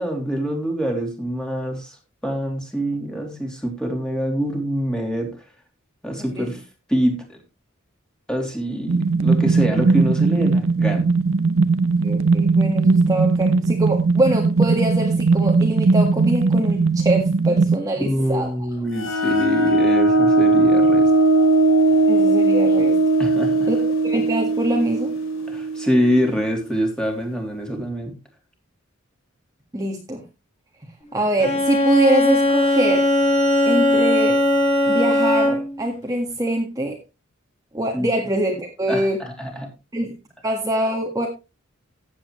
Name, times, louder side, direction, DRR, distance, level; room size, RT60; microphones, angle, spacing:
voice 1, 0.0-2.0 2.2-5.4 6.0-6.6 6.9-7.4 8.3-11.1 17.9-21.1 23.2-23.7 25.5-28.2 37.9-38.1 38.9-39.7, equal, 5° left, 2 dB, 3.0 m, -25 dB
voice 2, 6.2-6.5 12.0-18.5 22.1-23.0 23.7-25.1 29.7-30.2 31.1-33.1 33.7-34.4 34.9-37.0 37.7-39.2 39.9-40.1 40.4-41.3, right 1 dB, 15° right, 1 dB, 1.7 m, -24 dB
sound 1, 8.9-17.8, right 4 dB, 75° right, 0.8 m, -18 dB
sound 2, 19.0-26.4, right 2 dB, 80° left, 2.8 m, -18 dB
Bowed string instrument, 31.4-35.8, left 1 dB, 35° left, 5.6 m, -19 dB
15.0 x 8.6 x 3.1 m, 0.28 s
head